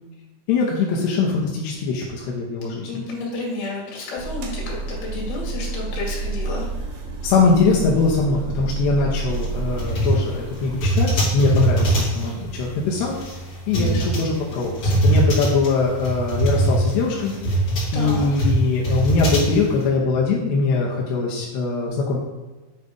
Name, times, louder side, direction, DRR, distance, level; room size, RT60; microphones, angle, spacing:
voice 1, 0.5-2.9 7.2-13.2 13.7-17.6 17.9-22.2, left 4 dB, 75° left, -3 dB, 2.6 m, -22 dB
voice 2, 2.6-6.9 13.7-14.1 17.9-18.5, left 3 dB, 55° left, -3 dB, 3.9 m, -31 dB
sound 1, 4.2-10.9, right 3 dB, 85° right, 1.8 m, -30 dB
sound 2, 9.3-19.8, right 1 dB, 40° left, 2.5 m, -22 dB
9.4 x 4.1 x 5.2 m, 1.2 s
omnidirectional pair, 5.6 m